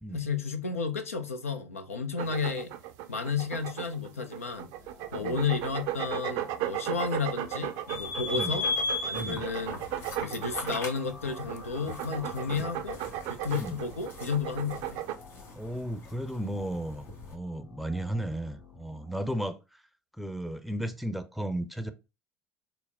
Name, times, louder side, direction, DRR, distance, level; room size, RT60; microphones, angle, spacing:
voice 1, 0.1-2.7 3.1-4.7 5.1-8.7 9.1-9.8 10.2-13.0 13.3-15.0, left 5 dB, 90° left, 0.5 m, -32 dB
sound 1, 2.2-15.1, right 12 dB, 60° right, 0.4 m, -36 dB
sound 2, 4.5-19.5, left 4 dB, 65° left, 1.4 m, -52 dB
voice 2, 5.1-5.4 6.9-7.0 8.3-8.6 9.1-9.4 13.5-13.8 15.5-19.8 20.2-21.9, right 1 dB, ahead, 0.5 m, -35 dB
sound 3, 7.9-17.3, left 3 dB, 45° left, 1.9 m, -37 dB
4.6 x 2.0 x 3.4 m
hypercardioid pair, 65°, 7 cm